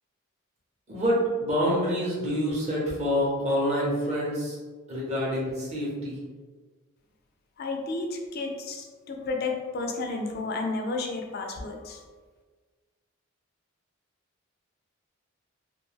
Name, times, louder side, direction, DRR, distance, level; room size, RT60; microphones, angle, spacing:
voice 1, 0.9-4.6 4.9-6.2, equal, 30° right, -5 dB, 0.7 m, -27 dB
voice 2, 7.6-12.0, left 3 dB, 45° left, 3 dB, 0.3 m, -32 dB
2.3 x 2.2 x 3.2 m, 1.4 s
head